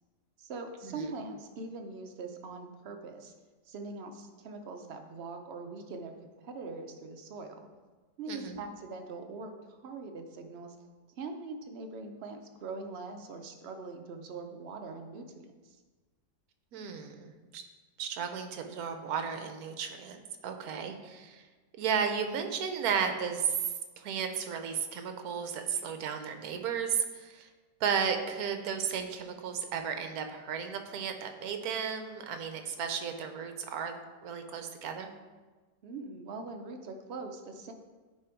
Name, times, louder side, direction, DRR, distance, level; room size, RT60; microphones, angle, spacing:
voice 1, 0.4-3.3 3.6-7.6 8.2-10.8 11.2-15.8 35.8-37.7, right 3 dB, 85° right, 4 dB, 0.5 m, -42 dB
voice 2, 8.3-8.6 16.7-17.6 18.0-21.4 21.8-23.6 24.0-27.5 27.8-35.1, right 7 dB, 65° right, 6 dB, 1.1 m, -34 dB
9.9 x 3.4 x 4.5 m, 1.3 s
omnidirectional pair, 1.8 m